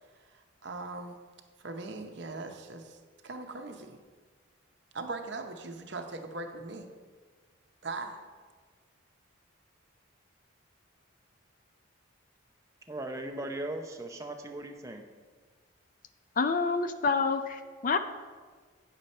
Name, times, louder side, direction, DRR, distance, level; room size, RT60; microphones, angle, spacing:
voice 1, 0.3-1.2 1.6-3.0 3.2-4.0 4.9-6.9 7.8-8.2, right 3 dB, 55° right, 5 dB, 0.7 m, -40 dB
voice 2, 12.9-15.0, right 1 dB, 15° right, 3 dB, 0.6 m, -38 dB
voice 3, 16.4-18.0, left 4 dB, 40° left, 10 dB, 0.4 m, -28 dB
9.1 x 6.8 x 4.3 m, 1.5 s
head